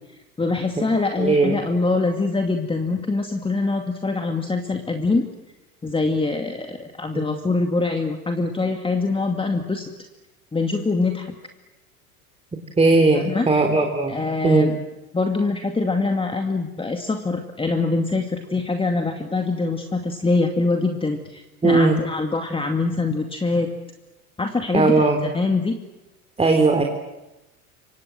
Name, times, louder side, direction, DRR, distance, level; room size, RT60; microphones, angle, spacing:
voice 1, 0.4-5.3 5.8-9.9 10.5-11.3 13.1-13.5 14.1-14.8 15.1-23.7 24.4-25.8, left 3 dB, 10° left, 4 dB, 2.3 m, -24 dB
voice 2, 1.2-1.6 7.1-7.2 12.8-14.1 14.4-14.7 21.6-22.0 24.7-25.2 26.4-26.8, right 3 dB, 15° right, 4 dB, 3.6 m, -18 dB
28.5 x 25.0 x 7.8 m, 1.0 s
figure-of-eight pair, 80°, 44 cm